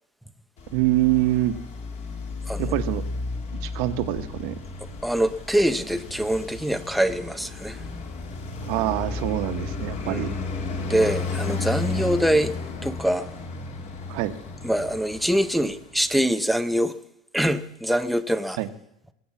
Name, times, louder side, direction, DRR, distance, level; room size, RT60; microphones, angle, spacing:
Traffic noise roadway noise, 0.6-16.1, left 3 dB, 35° left, 2.4 m, -33 dB
voice 1, 0.7-1.5 2.6-3.0 3.5-4.6 8.7-10.3 14.1-14.3 18.6-18.7, right 15 dB, 75° right, 1.3 m, -25 dB
voice 2, 5.0-7.8 10.1-10.5 10.9-12.5 12.8-13.3 14.6-16.9 17.3-18.6, equal, ahead, 0.6 m, -24 dB
21.5 x 8.8 x 7.2 m
cardioid pair, 160°, 19 cm